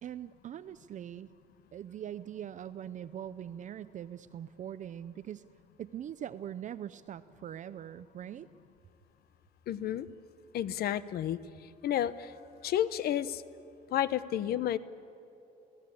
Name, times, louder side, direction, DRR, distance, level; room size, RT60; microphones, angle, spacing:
voice 1, 0.0-1.3 1.7-5.5 5.8-8.5, right 10 dB, 45° right, 14 dB, 0.6 m, -42 dB
voice 2, 9.7-10.1 10.5-11.4 11.8-12.3 12.6-13.4 13.9-14.8, left 11 dB, 65° left, 15 dB, 1.0 m, -31 dB
30.0 x 18.0 x 8.6 m, 2.9 s
cardioid pair, 110°, 17 cm